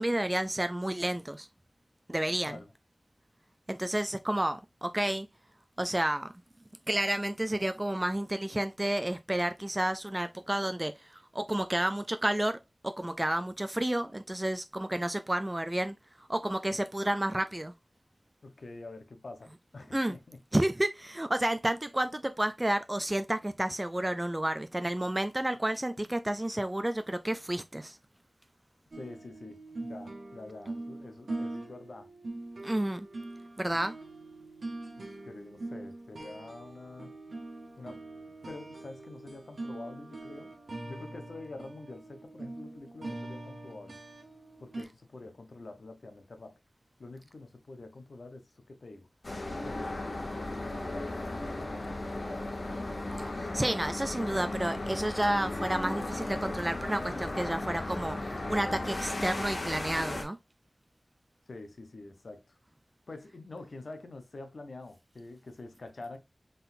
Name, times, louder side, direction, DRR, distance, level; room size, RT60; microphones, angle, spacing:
voice 1, 0.0-1.5 2.1-2.6 3.7-5.3 5.8-6.3 6.9-12.6 12.8-15.9 16.3-17.7 19.9-20.2 20.5-28.0 32.6-33.1 33.6-34.0 53.2-60.4, right 1 dB, 20° right, 0.4 m, -31 dB
voice 2, 18.4-20.4 28.9-32.1 35.0-37.1 37.8-38.0 38.4-40.5 40.9-44.0 44.6-46.5 47.0-49.1 49.6-52.7 61.5-62.6 63.1-66.2, left 2 dB, 80° left, 0.8 m, -47 dB
sound 1, 28.9-44.8, right 2 dB, 90° right, 1.2 m, -43 dB
sound 2, 49.2-60.2, left 2 dB, 60° left, 1.2 m, -35 dB
3.9 x 3.8 x 2.6 m
wide cardioid pair, 70°, 0 cm